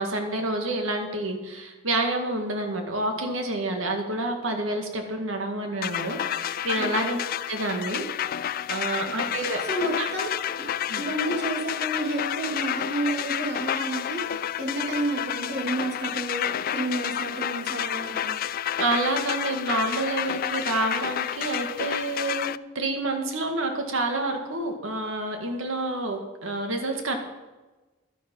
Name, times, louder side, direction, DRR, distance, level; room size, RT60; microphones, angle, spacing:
voice 1, 0.0-7.2 7.5-8.1 8.7-9.6 10.0-10.1 10.9-11.0 18.8-27.2, right 2 dB, 85° right, 4 dB, 1.9 m, -28 dB
sound 1, 5.8-22.6, left 10 dB, 45° left, 0.3 m, -30 dB
voice 2, 6.8-7.2 9.1-9.2 9.6-10.3 10.6-10.7 11.0-18.4, right 1 dB, 60° right, 0 dB, 2.8 m, -30 dB
12.0 x 10.5 x 5.4 m, 1.2 s
head